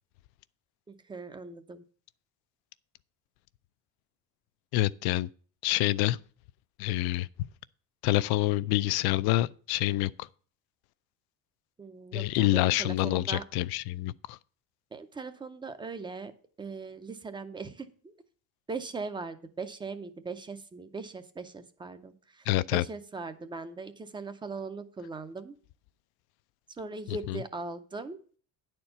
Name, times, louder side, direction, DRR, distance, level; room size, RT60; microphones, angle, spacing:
voice 1, 0.9-1.8 11.8-13.4 14.9-16.3 16.6-18.1 18.7-25.6 26.8-28.2, right 4 dB, 15° right, 0.5 m, -40 dB
voice 2, 4.7-5.3 5.6-6.2 6.8-7.3 8.0-10.3 12.1-14.4 22.5-22.8 27.1-27.4, left 16 dB, 85° left, 0.5 m, -27 dB
10.5 x 4.4 x 6.6 m
cardioid pair, 175°, 37 cm